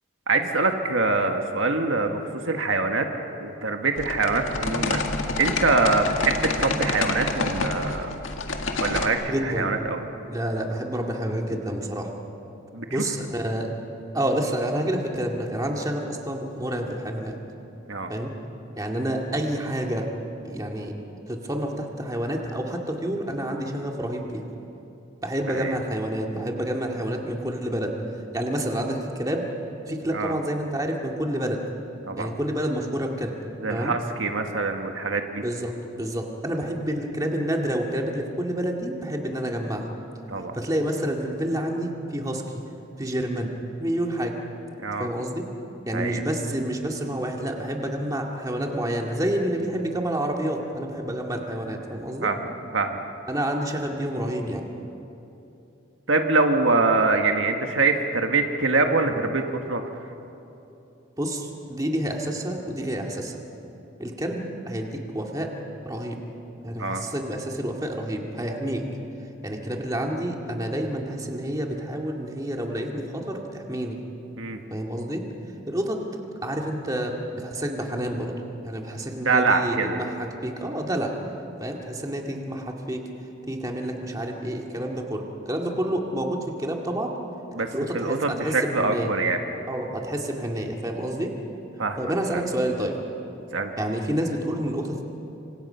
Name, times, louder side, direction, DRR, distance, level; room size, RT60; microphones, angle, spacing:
voice 1, 0.3-2.2 2.4-3.0 3.4-5.0 5.4-8.1 8.8-10.0 12.7-13.0 17.9-18.1 25.5-25.7 30.1-30.3 32.1-32.3 33.6-35.4 40.3-40.5 44.8-45.1 45.9-46.2 52.2-53.0 56.1-59.4 59.7-59.8 66.8-67.0 74.4-74.6 79.2-80.0 87.5-87.7 87.9-89.4 91.8-92.4 93.5-93.7, right 3 dB, 75° right, 4 dB, 1.6 m, -24 dB
sound 1, 4.0-9.1, left 3 dB, 80° left, 1.9 m, -28 dB
voice 2, 9.3-9.7 10.3-12.1 12.9-13.7 14.1-17.4 18.1-18.3 18.8-20.1 20.4-20.9 21.3-24.4 25.2-27.9 28.3-29.4 29.9-31.6 32.2-33.3 33.7-33.9 35.4-39.9 40.5-42.4 43.0-43.5 43.8-44.3 45.0-45.4 45.9-52.3 53.3-54.7 61.2-63.4 64.0-65.5 65.9-66.2 66.6-68.8 69.4-74.0 74.7-75.2 75.7-76.0 76.4-78.3 78.6-81.1 81.6-83.1 83.5-87.1 87.7-89.1 89.7-91.3 92.0-93.0 93.8-95.0, right 1 dB, 20° right, 1 dB, 2.0 m, -28 dB
27.5 x 25.5 x 5.7 m, 2.8 s
head